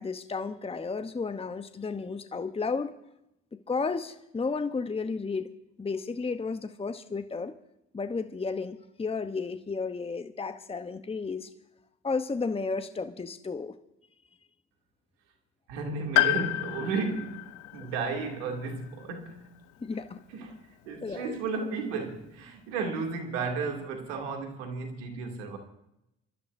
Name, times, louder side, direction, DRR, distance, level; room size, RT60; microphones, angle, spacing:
voice 1, 0.0-2.9 3.5-5.5 5.8-7.5 7.9-11.5 12.0-13.8 19.8-20.2 21.0-21.4, left 4 dB, 15° left, 1.0 m, -33 dB
voice 2, 15.7-19.4 20.3-25.6, right 4 dB, 80° right, 2.7 m, -34 dB
Piano, 16.1-20.0 20.3-20.4 21.5-21.6, left 18 dB, 60° left, 0.7 m, -31 dB
27.0 x 13.5 x 2.7 m
hypercardioid pair, 55°, 34 cm